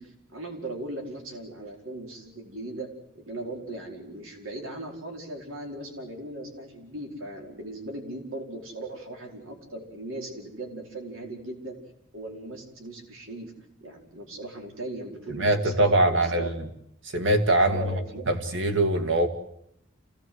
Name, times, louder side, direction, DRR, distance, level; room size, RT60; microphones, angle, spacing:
voice 1, 0.0-2.9 3.1-11.8 12.1-13.5 13.8-16.5 17.7-18.3, right 1 dB, 85° right, 1 dB, 4.8 m, -38 dB
voice 2, 15.3-16.5 17.1-17.8 18.3-19.3, right 1 dB, 65° right, 6 dB, 2.4 m, -22 dB
27.5 x 17.5 x 7.9 m, 0.78 s
head